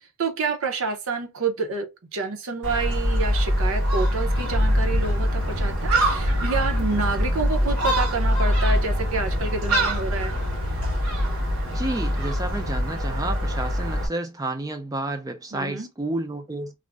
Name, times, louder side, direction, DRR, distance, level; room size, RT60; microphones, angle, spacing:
voice 1, 0.2-10.4 15.5-15.9, right 4 dB, 65° right, 0.6 m, -28 dB
Gull seagull, 2.6-14.1, equal, 85° right, 1.1 m, -24 dB
sound 1, 4.3-9.4, left 2 dB, 60° left, 0.6 m, -36 dB
sound 2, 7.6-12.7, left 1 dB, 20° left, 0.7 m, -38 dB
voice 2, 11.7-16.7, right 2 dB, 15° right, 0.3 m, -30 dB
2.4 x 2.0 x 3.4 m
head